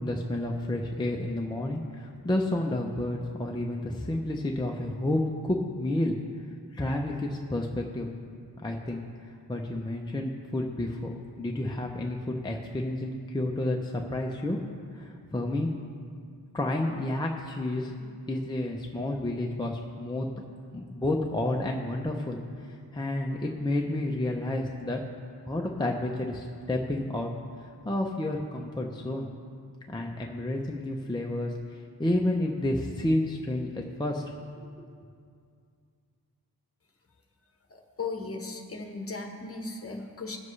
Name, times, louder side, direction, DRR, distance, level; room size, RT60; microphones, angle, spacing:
voice 1, 0.0-6.2 6.7-8.1 8.6-11.1 11.4-14.6 14.9-15.7 16.5-20.3 20.7-25.0 25.5-27.3 27.6-29.3 29.9-34.2 34.6-34.9, left 1 dB, 10° left, 0 dB, 0.5 m, -30 dB
voice 2, 37.7-40.4, left 3 dB, 35° left, 3 dB, 1.1 m, -37 dB
20.5 x 7.4 x 3.2 m, 2.3 s
wide cardioid pair, 175°, 39 cm